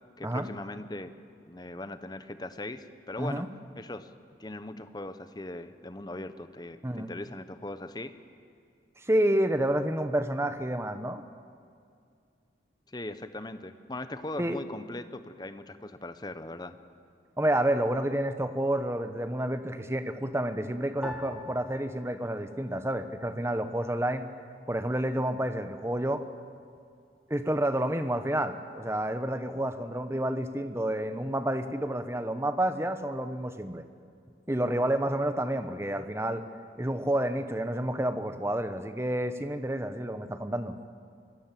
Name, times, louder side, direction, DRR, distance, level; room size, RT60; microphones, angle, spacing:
voice 1, 0.2-1.1 1.5-3.5 3.7-4.1 4.4-8.2 12.9-16.8, left 2 dB, 20° left, 11 dB, 0.9 m, -39 dB
voice 2, 9.0-11.2 14.4-14.6 17.4-24.2 24.7-26.2 27.3-33.8 34.5-36.4 36.8-40.7, right 1 dB, 15° right, 9 dB, 1.0 m, -29 dB
sound 1, 21.0-23.5 23.8-24.7 25.3-25.7, left 1 dB, 5° left, 2.4 m, -46 dB
25.0 x 21.0 x 7.6 m, 2.3 s
head